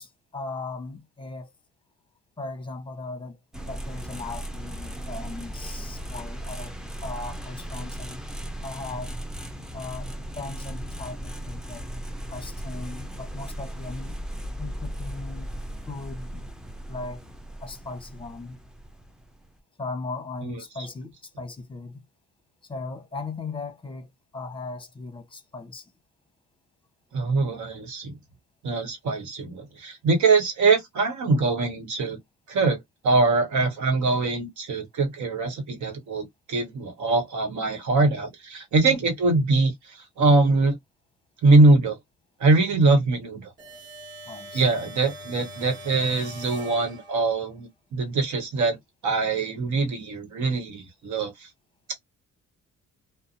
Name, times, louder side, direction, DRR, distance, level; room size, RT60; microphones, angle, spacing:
voice 1, 0.0-1.5 2.4-3.4 3.6-8.2 8.6-9.2 9.7-14.2 14.6-15.5 15.9-16.5 16.9-17.2 17.6-18.6 19.8-22.0 22.6-25.9 38.8-39.0 44.3-44.7, left 3 dB, 15° left, 0.9 m, -38 dB
sound 1, 3.5-19.6, right 1 dB, ahead, 0.5 m, -37 dB
voice 2, 27.1-28.2 28.6-32.2 32.5-40.7 41.4-42.0 42.4-43.5 44.5-48.8 49.0-51.5, right 3 dB, 70° right, 1.1 m, -23 dB
sound 2, 43.6-47.5, right 1 dB, 40° right, 1.3 m, -42 dB
2.6 x 2.1 x 2.5 m
cardioid pair, 90°, 30 cm